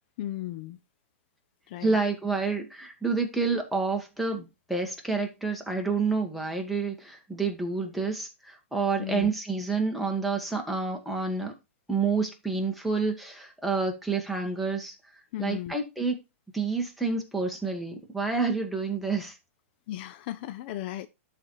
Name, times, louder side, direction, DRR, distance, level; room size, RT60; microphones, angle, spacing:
voice 1, 0.2-0.8 1.7-2.0 9.0-9.3 15.3-15.7 19.9-21.1, left 13 dB, 50° left, 0.5 m, -35 dB
voice 2, 1.8-11.5 11.9-14.9 15.4-16.2 16.5-19.3, right 4 dB, ahead, 1.6 m, -29 dB
12.0 x 4.2 x 3.1 m
hypercardioid pair, 130°, 7 cm